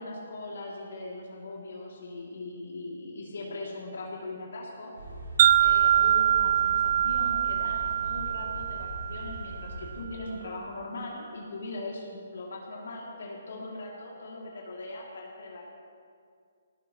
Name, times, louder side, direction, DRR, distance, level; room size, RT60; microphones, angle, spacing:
voice 1, 0.0-4.9 5.6-15.7, left 2 dB, 70° left, -3 dB, 2.7 m, -40 dB
sound 1, 4.9-10.0, right 1 dB, 85° right, 4.5 m, -41 dB
Wind chime, 5.4-9.7, right 10 dB, 45° right, 0.5 m, -24 dB
18.5 x 16.0 x 3.1 m, 2.3 s
hypercardioid pair, 140°, 0 cm